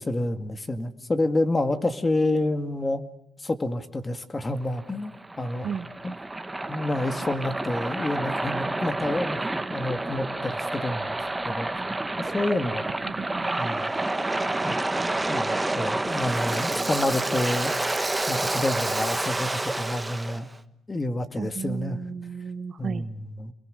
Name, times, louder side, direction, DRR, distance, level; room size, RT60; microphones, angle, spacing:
voice 1, 0.0-3.0 3.4-5.1 5.4-5.7 6.0-6.2 6.7-11.2 11.4-11.7 12.2-12.9 13.6-13.9 14.6-14.7 15.3-17.7 18.3-20.5 20.9-22.0 22.8-23.5, left 2 dB, 25° left, 9 dB, 2.1 m, -28 dB
Waves surf, 4.6-20.4, right 2 dB, 15° right, 1.3 m, -29 dB
voice 2, 13.2-13.7 21.4-23.1, right 6 dB, 55° right, 13 dB, 1.3 m, -34 dB
28.5 x 22.5 x 6.5 m, 0.79 s
cardioid pair, 90°, 0 cm